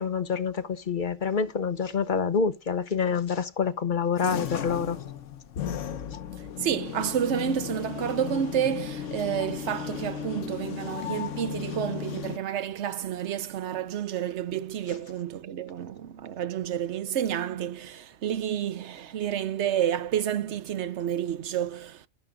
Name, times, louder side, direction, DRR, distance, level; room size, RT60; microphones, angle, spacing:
voice 1, 0.0-5.0, left 6 dB, 45° left, 1.0 m, -27 dB
sound 1, 4.2-12.4, left 9 dB, 75° left, 1.2 m, -35 dB
voice 2, 6.6-22.0, right 9 dB, 65° right, 1.0 m, -30 dB
16.0 x 5.8 x 3.8 m
omnidirectional pair, 1.3 m